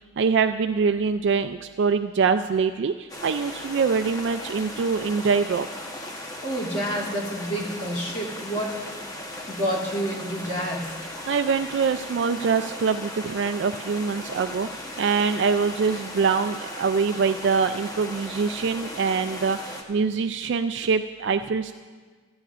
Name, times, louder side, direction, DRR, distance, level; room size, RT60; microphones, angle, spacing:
voice 1, 0.2-5.7 11.3-21.7, right 5 dB, 65° right, 9 dB, 0.3 m, -24 dB
sound 1, 3.1-19.8, left 1 dB, 20° left, 1.0 m, -37 dB
voice 2, 6.4-8.8 9.5-11.0, equal, 40° left, -6 dB, 2.7 m, -29 dB
16.5 x 13.5 x 2.5 m, 1.5 s
head